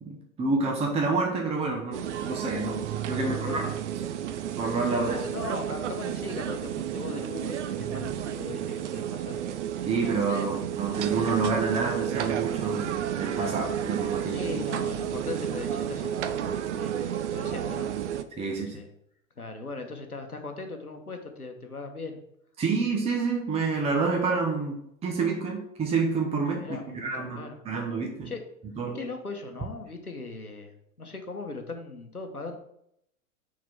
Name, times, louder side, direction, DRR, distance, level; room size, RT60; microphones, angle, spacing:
voice 1, 0.0-3.7 4.6-5.2 9.8-14.5 15.0-15.1 18.4-18.8 22.6-26.6 26.9-28.3 28.8-29.0, right 4 dB, 15° right, 1 dB, 1.0 m, -28 dB
sound 1, 1.9-18.2, right 10 dB, 55° right, 0.7 m, -31 dB
voice 2, 3.1-3.7 5.0-9.4 14.2-17.9 18.5-18.9 19.4-22.2 26.6-27.6 28.2-28.4 28.9-32.6, left 3 dB, 90° left, 5 dB, 1.2 m, -39 dB
6.4 x 3.9 x 5.5 m, 0.74 s
figure-of-eight pair, 95°, 43 cm